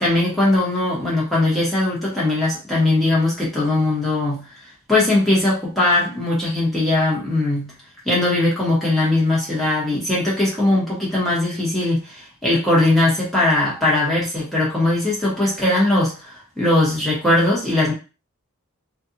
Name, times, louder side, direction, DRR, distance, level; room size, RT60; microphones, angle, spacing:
voice 1, 0.0-4.4 4.9-7.7 8.0-17.9, left 2 dB, ahead, -7 dB, 1.1 m, -20 dB
2.5 x 2.4 x 2.7 m, 0.31 s
head